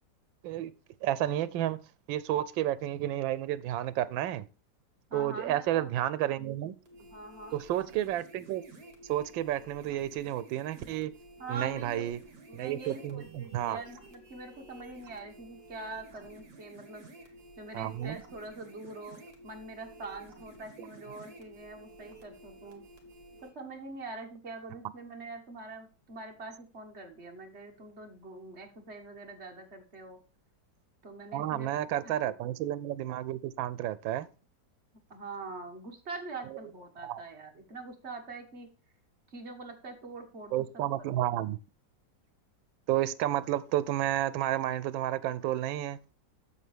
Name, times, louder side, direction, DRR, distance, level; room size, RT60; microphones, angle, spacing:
voice 1, 1.0-1.8 2.1-4.4 5.1-6.7 7.5-8.6 9.1-11.1 11.5-12.2 12.5-13.8 17.7-18.2 20.8-20.9 31.3-34.3 37.0-37.2 40.5-41.6 42.9-46.0, right 13 dB, 85° right, 1.4 m, -31 dB
voice 2, 5.1-5.9 7.0-7.6 11.4-12.1 12.5-19.2 19.4-22.8 23.4-30.2 31.0-31.7 32.0-32.3 35.1-38.7 39.3-40.6 41.0-41.1, right 3 dB, 35° right, 1.6 m, -44 dB
sound 1, 6.9-23.5, right 2 dB, 55° right, 2.4 m, -52 dB
8.2 x 7.3 x 3.4 m
omnidirectional pair, 2.1 m